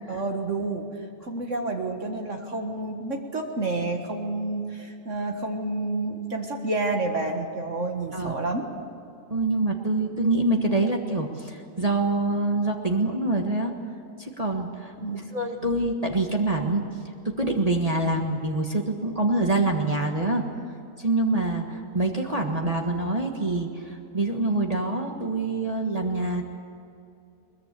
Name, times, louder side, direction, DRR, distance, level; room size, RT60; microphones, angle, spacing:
voice 1, 0.1-0.9 1.2-8.7 15.0-15.2, right 2 dB, 55° right, 2 dB, 1.9 m, -29 dB
voice 2, 9.3-13.7 14.2-16.9 17.2-20.5 21.0-26.4, right 2 dB, 25° right, 1 dB, 1.6 m, -25 dB
22.0 x 21.5 x 8.4 m, 2.6 s
omnidirectional pair, 1.6 m